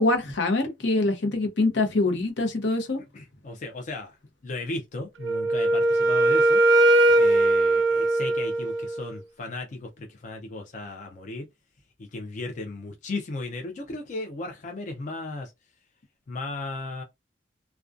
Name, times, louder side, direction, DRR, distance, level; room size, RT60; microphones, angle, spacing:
voice 1, 0.0-3.0, left 2 dB, 75° left, 0.7 m, -24 dB
voice 2, 3.1-4.2 4.4-6.6 7.1-11.5 12.0-15.5 16.3-17.0, left 2 dB, 40° left, 0.4 m, -35 dB
Wind instrument woodwind instrument, 5.2-9.1, right 2 dB, 75° right, 0.4 m, -20 dB
2.4 x 2.2 x 2.4 m
head